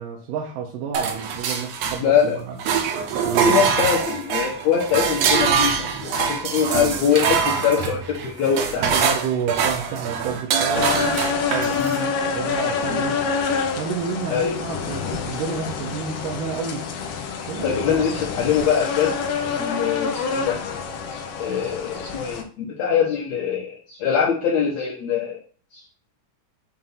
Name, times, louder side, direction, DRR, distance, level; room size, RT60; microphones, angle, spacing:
voice 1, 0.0-2.6 3.2-3.8 7.7-7.9 8.8-11.9 12.3-13.2 13.8-16.9 17.5-18.2, right 6 dB, 85° right, 2.5 m, -30 dB
sound 1, 0.9-2.3 2.6-12.0, right 6 dB, 70° right, 1.7 m, -24 dB
voice 2, 2.0-2.4 3.4-9.1 11.8-12.1 12.9-13.0 14.3-14.6 17.6-19.2 19.4-20.6 21.1-25.4 25.7-25.8, left 7 dB, 65° left, 2.1 m, -23 dB
sound 2, 10.7-22.4, left 5 dB, 80° left, 2.6 m, -27 dB
7.4 x 2.7 x 5.6 m
omnidirectional pair, 3.7 m